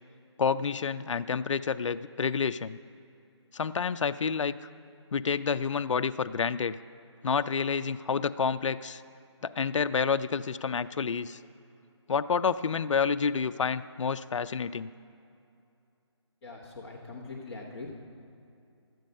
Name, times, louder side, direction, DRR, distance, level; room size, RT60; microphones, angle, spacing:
voice 1, 0.4-2.8 3.5-4.5 5.1-6.8 7.2-9.0 9.4-11.4 12.1-14.9, left 6 dB, 90° left, 12 dB, 0.4 m, -29 dB
voice 2, 16.4-18.0, left 3 dB, 5° left, -7 dB, 1.1 m, -42 dB
12.5 x 9.1 x 5.3 m, 2.6 s
hypercardioid pair, 170°, 15 cm